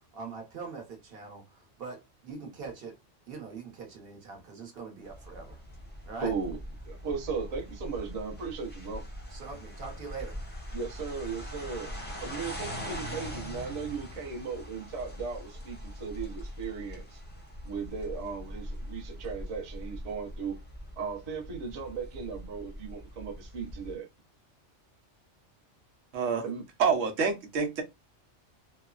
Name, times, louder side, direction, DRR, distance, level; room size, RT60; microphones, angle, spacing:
voice 1, 0.1-3.0 3.3-5.6 6.0-6.3 9.3-10.4, right 4 dB, 55° right, 1.1 m, -42 dB
sound 1, 5.0-23.9, equal, 10° left, 0.5 m, -42 dB
voice 2, 6.1-6.6 6.8-9.1 10.7-11.9 12.2-17.2 17.6-20.6 21.0-24.1 26.4-26.6, right 5 dB, 40° right, 0.7 m, -36 dB
voice 3, 26.1-26.4 26.8-27.8, right 5 dB, 85° right, 1.1 m, -27 dB
3.1 x 2.0 x 2.3 m
omnidirectional pair, 1.3 m